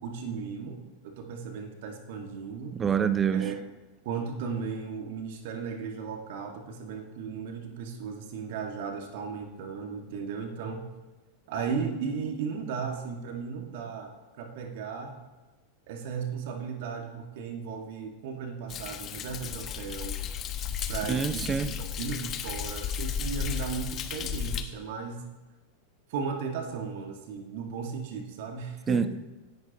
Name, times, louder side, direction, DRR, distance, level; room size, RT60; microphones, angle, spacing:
voice 1, 0.0-2.7 3.3-3.5 4.0-10.9 11.5-14.1 14.4-15.2 15.9-20.2 20.9-25.2 26.1-29.0, right 6 dB, 50° right, 2.1 m, -36 dB
voice 2, 2.7-3.5 21.1-21.8 28.9-29.2, right 7 dB, 20° right, 0.8 m, -26 dB
Thunder, 18.7-24.6, left 7 dB, 30° left, 1.2 m, -34 dB
25.5 x 11.5 x 3.0 m
figure-of-eight pair, 90°, 0 cm